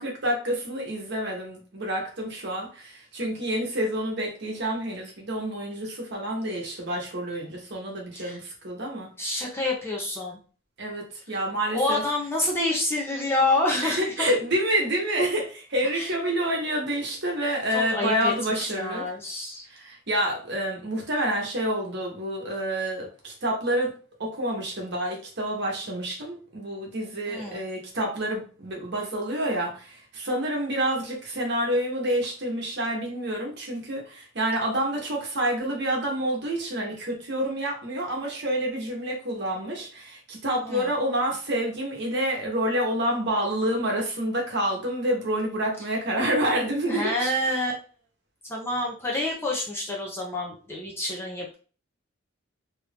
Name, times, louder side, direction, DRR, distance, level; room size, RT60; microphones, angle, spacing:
voice 1, 0.0-9.1 10.8-12.0 13.8-19.0 19.7-23.9 24.2-47.3, right 1 dB, 50° right, 0 dB, 1.0 m, -28 dB
voice 2, 9.2-10.4 11.7-14.3 15.9-16.1 17.7-19.6 27.3-27.6 40.6-40.9 46.9-47.7 48.4-51.6, left 2 dB, 10° left, -2 dB, 0.6 m, -28 dB
3.0 x 2.6 x 3.4 m, 0.38 s
head